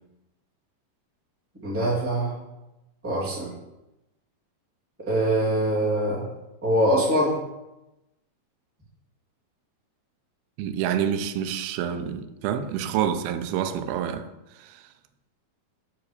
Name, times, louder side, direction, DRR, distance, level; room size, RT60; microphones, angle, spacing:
voice 1, 1.6-2.3 3.0-3.5 5.1-6.3 6.6-7.4, right 1 dB, 5° right, 1.5 m, -23 dB
voice 2, 10.6-14.9, right 9 dB, 80° right, 2.5 m, -28 dB
8.2 x 5.3 x 7.0 m
omnidirectional pair, 4.5 m